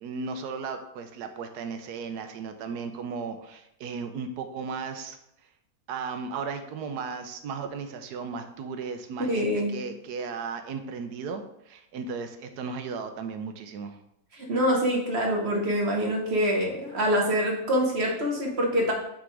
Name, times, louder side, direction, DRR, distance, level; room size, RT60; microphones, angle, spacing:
voice 1, 0.0-5.2 5.9-14.0, right 5 dB, 75° right, 8 dB, 1.2 m, -35 dB
voice 2, 9.3-9.8 14.3-18.9, equal, 45° right, 0 dB, 1.3 m, -25 dB
5.9 x 3.7 x 4.6 m, 0.78 s
omnidirectional pair, 1.8 m